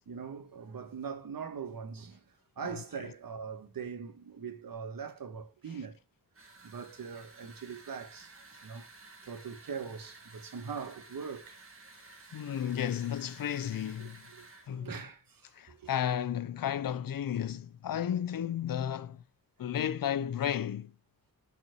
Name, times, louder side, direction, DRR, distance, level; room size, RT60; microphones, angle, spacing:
voice 1, 0.1-2.2 2.6-6.0 6.6-8.3 8.6-8.8 9.3-11.6 12.2-12.4 14.0-14.1 14.4-14.5 14.8-15.9, right 6 dB, 80° right, 1.5 m, -41 dB
voice 2, 2.6-3.1 5.7-5.9 12.3-14.3 14.7-15.1 15.5-19.2 19.6-20.9, left 9 dB, 75° left, 0.6 m, -33 dB
sound 1, 6.3-14.7, right 3 dB, 40° right, 1.7 m, -54 dB
7.0 x 4.4 x 6.2 m
wide cardioid pair, 130°, 34 cm